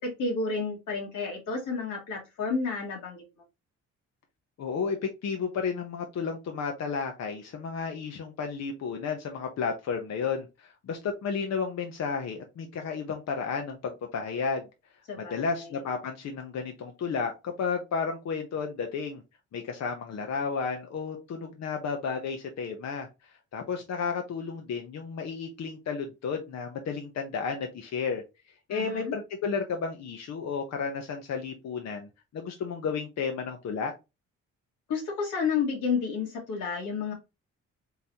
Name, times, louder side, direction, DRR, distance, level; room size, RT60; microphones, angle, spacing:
voice 1, 0.0-3.2 15.1-15.8 28.7-29.1 34.9-37.1, left 5 dB, 90° left, 2.1 m, -31 dB
voice 2, 4.6-14.7 15.2-19.2 19.5-28.2 28.7-32.1 32.3-33.9, left 5 dB, 60° left, 0.9 m, -32 dB
4.0 x 3.9 x 2.9 m
cardioid pair, 90°, 30 cm